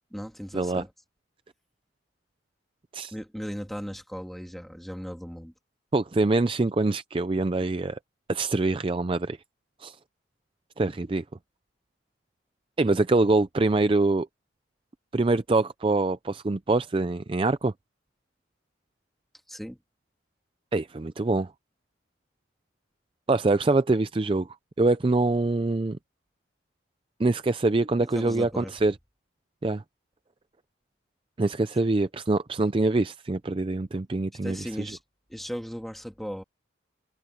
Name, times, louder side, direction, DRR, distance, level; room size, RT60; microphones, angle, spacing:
voice 1, 0.1-0.9 3.1-5.5 12.9-13.0 19.5-19.8 28.0-28.7 34.4-35.0 35.3-36.4, equal, ahead, 2.2 m, -37 dB
voice 2, 5.9-8.0 8.3-9.4 9.8-10.0 10.8-11.2 12.8-14.3 15.1-17.7 20.7-21.5 23.3-24.5 24.8-26.0 27.2-28.9 29.6-29.8 31.4-34.9, right 2 dB, 25° right, 0.4 m, -24 dB
head